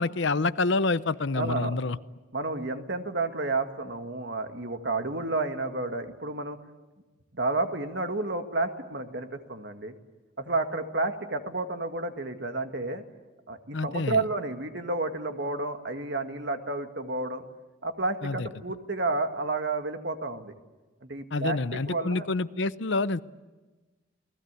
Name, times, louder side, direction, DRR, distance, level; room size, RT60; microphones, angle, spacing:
voice 1, 0.0-2.0 13.7-14.2 18.2-18.5 21.3-23.2, left 3 dB, 60° left, 14 dB, 0.7 m, -27 dB
voice 2, 1.3-1.8 2.3-6.6 7.3-9.9 10.4-13.0 13.5-17.4 17.8-20.5 21.0-22.3, right 2 dB, 55° right, 6 dB, 2.0 m, -31 dB
28.5 x 20.0 x 8.3 m, 1.2 s
head